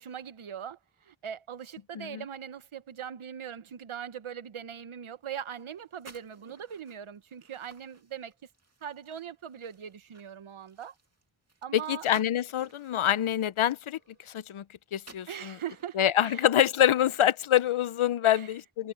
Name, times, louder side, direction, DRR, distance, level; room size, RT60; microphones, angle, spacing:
voice 1, 0.0-8.3 8.8-10.9 11.6-12.0 15.3-16.5 18.2-18.5, right 8 dB, 75° right, 1.1 m, -41 dB
sound 1, 5.3-14.6 14.9-18.1, right 3 dB, 30° right, 2.4 m, -58 dB
voice 2, 11.7-14.6 14.9-15.6 16.0-18.9, left 11 dB, 75° left, 0.7 m, -26 dB
wide cardioid pair, 110°, 49 cm